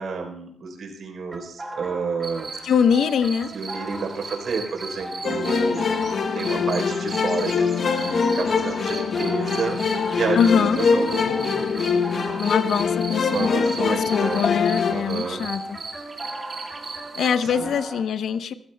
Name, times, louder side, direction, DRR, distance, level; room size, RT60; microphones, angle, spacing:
voice 1, 0.0-2.7 3.5-5.9 6.3-11.9 13.2-14.5 14.9-15.4 17.4-17.8, right 5 dB, 70° right, 3 dB, 3.7 m, -30 dB
sound 1, 1.3-18.0, right 1 dB, 20° right, 2.5 m, -38 dB
sound 2, 2.2-17.3, right 4 dB, 40° right, 1.9 m, -38 dB
voice 2, 2.6-3.5 10.3-10.8 12.4-15.8 17.1-18.5, left 7 dB, 85° left, 10 dB, 0.8 m, -23 dB
sound 3, 5.2-14.9, left 5 dB, 60° left, 1.2 m, -23 dB
27.0 x 15.0 x 2.2 m, 0.71 s
cardioid pair, 120°, 0 cm